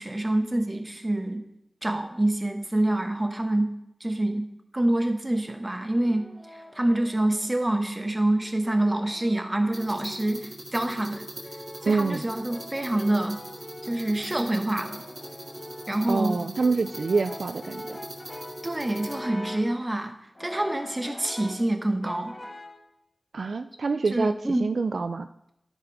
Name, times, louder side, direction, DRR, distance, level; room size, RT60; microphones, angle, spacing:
voice 1, 0.0-1.4 1.8-3.7 4.0-4.5 4.7-11.3 11.8-13.4 13.8-15.0 15.9-16.4 18.6-20.1 20.4-22.3 24.1-24.7, right 1 dB, 20° right, 5 dB, 1.1 m, -26 dB
Brass instrument, 5.7-7.6 8.4-10.4 11.1-19.8 20.4-21.7 22.0-22.9, left 1 dB, 25° left, 1.1 m, -43 dB
sound 1, 9.7-19.2, right 1 dB, 35° right, 2.2 m, -42 dB
voice 2, 11.9-12.2 16.1-18.0 23.3-24.3 24.6-25.3, right 4 dB, 65° right, 10 dB, 0.4 m, -26 dB
12.5 x 5.3 x 4.7 m, 0.81 s
wide cardioid pair, 100°, 0 cm